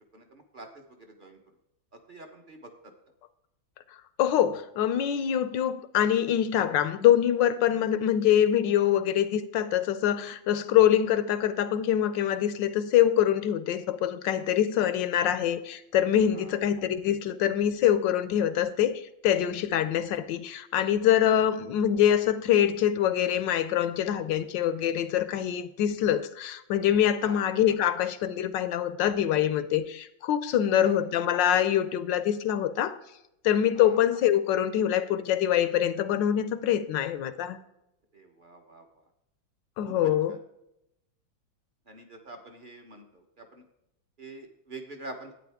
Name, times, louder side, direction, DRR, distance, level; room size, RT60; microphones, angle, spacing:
voice 1, 0.1-1.4 2.1-2.9 16.3-16.6 27.2-27.5 30.8-31.0 33.7-34.0 38.1-39.0 39.8-40.4 41.9-43.6 44.2-45.3, right 2 dB, 35° right, 0.9 m, -46 dB
voice 2, 4.2-33.0 33.4-37.6 39.8-40.3, left 10 dB, 75° left, 1.2 m, -24 dB
11.5 x 9.2 x 3.5 m
omnidirectional pair, 2.2 m